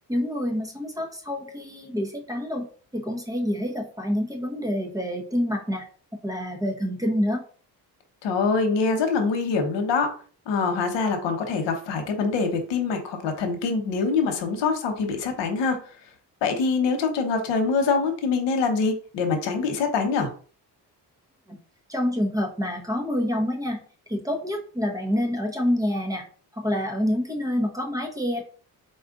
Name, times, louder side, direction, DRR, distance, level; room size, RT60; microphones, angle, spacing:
voice 1, 0.1-2.7 2.9-5.9 6.2-7.4 21.5-21.6 21.9-23.8 24.1-26.2 26.6-28.4, equal, 10° right, 2 dB, 0.8 m, -27 dB
voice 2, 8.2-10.1 10.5-15.8 16.4-20.3, left 4 dB, 85° left, 5 dB, 1.0 m, -24 dB
4.1 x 2.4 x 3.7 m, 0.42 s
cardioid pair, 130°, 42 cm